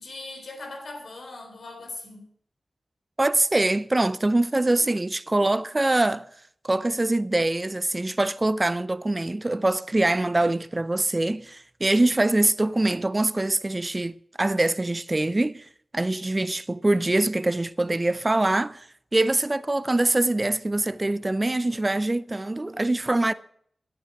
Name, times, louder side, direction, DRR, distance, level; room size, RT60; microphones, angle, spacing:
voice 1, 0.0-2.3, left 2 dB, 75° left, 3.7 m, -39 dB
voice 2, 3.2-6.3 6.6-15.7 15.9-18.9 19.1-23.3, right 2 dB, 30° right, 0.5 m, -24 dB
13.5 x 8.8 x 7.1 m
cardioid pair, 60°, 0 cm